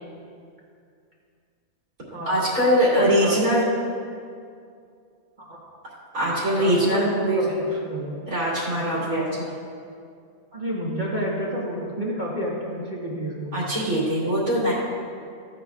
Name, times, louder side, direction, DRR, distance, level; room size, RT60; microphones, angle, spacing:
voice 1, 2.3-3.6 6.1-7.5 8.3-9.5 13.5-14.7, equal, 75° right, -8 dB, 3.0 m, -22 dB
voice 2, 2.9-3.4 5.4-5.6 6.6-8.2 8.8-9.4 10.5-13.8, equal, 35° right, -5 dB, 1.4 m, -30 dB
15.0 x 10.0 x 2.4 m, 2.3 s
omnidirectional pair, 1.5 m